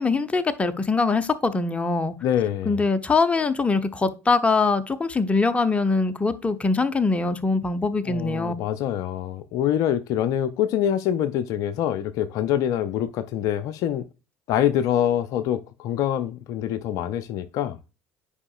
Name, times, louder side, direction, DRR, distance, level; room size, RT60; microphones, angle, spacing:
voice 1, 0.0-2.1 2.7-8.5, left 4 dB, 15° left, 0.8 m, -23 dB
voice 2, 2.2-2.8 8.0-14.0 14.5-17.8, left 10 dB, 55° left, 0.5 m, -25 dB
9.7 x 4.9 x 2.3 m
hypercardioid pair, 65°, 7 cm